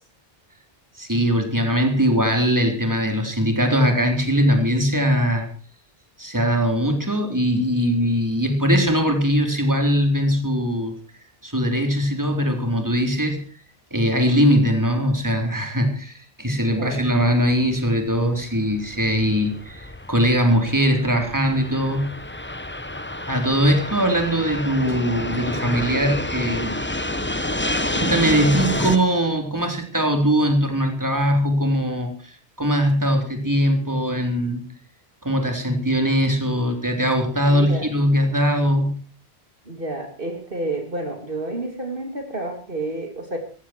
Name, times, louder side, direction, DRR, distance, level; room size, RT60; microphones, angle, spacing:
voice 1, 1.0-5.5 6.2-10.9 11.4-13.4 13.9-22.2 23.3-26.7 27.9-32.3 32.6-34.6 35.2-39.0, equal, 15° right, 4 dB, 3.8 m, -21 dB
voice 2, 16.7-17.1 37.5-37.9 39.7-43.4, right 2 dB, 60° right, 4 dB, 3.0 m, -30 dB
Fixed-wing aircraft airplane, 16.8-29.0, left 1 dB, 10° left, 1.1 m, -29 dB
18.5 x 15.5 x 4.5 m, 0.40 s
omnidirectional pair, 1.1 m